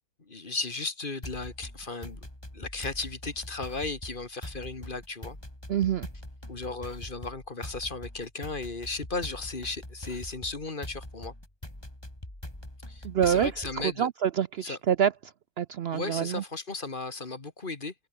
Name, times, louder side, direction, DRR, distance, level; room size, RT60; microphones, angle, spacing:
voice 1, 0.2-2.2 2.5-5.4 6.5-11.3 12.9-14.1 14.6-14.8 15.9-17.9, left 3 dB, 35° left, 2.0 m, -35 dB
sound 1, 1.2-13.9, left 1 dB, 15° left, 4.3 m, -43 dB
voice 2, 5.7-6.1 13.0-13.5 14.0-15.1 15.6-16.4, right 9 dB, 70° right, 0.5 m, -26 dB
omnidirectional pair, 1.7 m